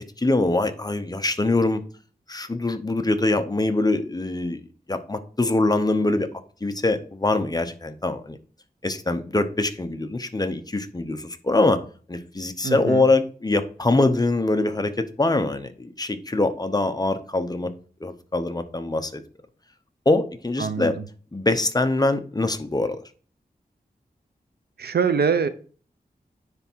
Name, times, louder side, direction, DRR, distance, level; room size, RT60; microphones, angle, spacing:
voice 1, 0.2-1.8 2.3-4.6 4.9-6.3 6.6-8.4 8.8-11.8 12.1-17.7 18.0-19.2 20.1-20.9 21.3-23.0, left 2 dB, 25° left, 8 dB, 0.8 m, -23 dB
voice 2, 12.6-13.0 20.6-21.0 24.8-25.5, right 6 dB, 90° right, 11 dB, 0.7 m, -24 dB
9.7 x 3.5 x 4.5 m, 0.40 s
wide cardioid pair, 80°, 16 cm